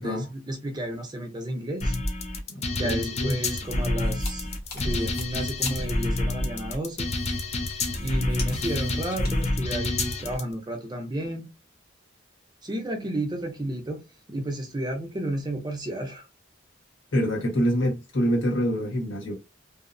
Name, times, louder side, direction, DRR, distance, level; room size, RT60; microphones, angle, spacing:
voice 1, 0.0-1.9 2.8-4.5 4.7-7.1 8.0-11.5 12.6-14.0 14.3-16.3, right 1 dB, 20° right, 0.5 m, -32 dB
sound 1, 1.8-10.4, left 2 dB, 35° left, 0.4 m, -28 dB
voice 2, 2.5-3.4 17.1-19.3, equal, 80° left, 1.2 m, -26 dB
sound 2, 4.0-9.5, left 1 dB, 55° left, 0.9 m, -39 dB
2.7 x 2.0 x 2.5 m
head